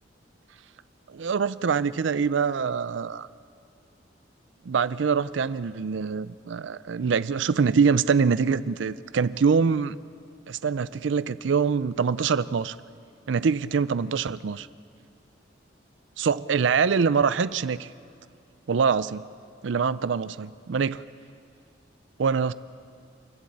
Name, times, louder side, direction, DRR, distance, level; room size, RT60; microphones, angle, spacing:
voice 1, 1.1-3.3 4.7-10.0 10.5-12.8 13.3-14.7 16.2-17.9 18.7-19.2 19.6-21.0 22.2-22.5, right 5 dB, 75° right, 16 dB, 0.5 m, -24 dB
29.5 x 12.0 x 8.6 m, 2.3 s
head